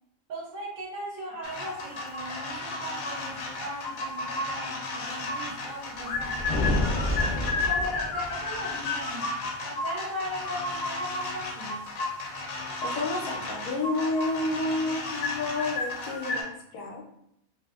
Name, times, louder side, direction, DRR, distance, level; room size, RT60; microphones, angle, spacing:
voice 1, 0.3-6.9 7.5-9.4 9.6-11.9 14.8-15.0, equal, 65° right, -1 dB, 0.9 m, -38 dB
sound 1, 1.4-16.4, left 3 dB, 70° left, 1.0 m, -33 dB
sound 2, 6.0-8.6, left 1 dB, 45° left, 0.6 m, -29 dB
voice 2, 12.8-17.0, left 2 dB, 90° left, 0 dB, 1.2 m, -30 dB
2.6 x 2.5 x 2.4 m, 0.77 s
omnidirectional pair, 1.6 m